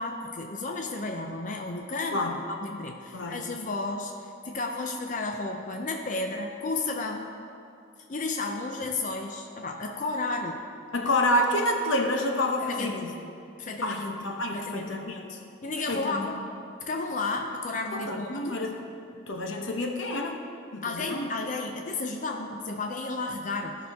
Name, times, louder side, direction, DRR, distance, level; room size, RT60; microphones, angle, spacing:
voice 1, 0.0-2.2 2.6-7.3 8.1-10.6 12.6-12.9 13.6-14.0 14.5-14.9 15.6-16.4 16.8-18.6 20.8-23.8, left 3 dB, 40° left, 3 dB, 0.5 m, -32 dB
voice 2, 10.9-13.1 13.8-15.4 15.9-16.3 17.9-18.8 19.3-20.4 20.7-21.3, left 1 dB, 70° left, 2 dB, 0.9 m, -28 dB
15.5 x 6.0 x 3.5 m, 2.5 s
head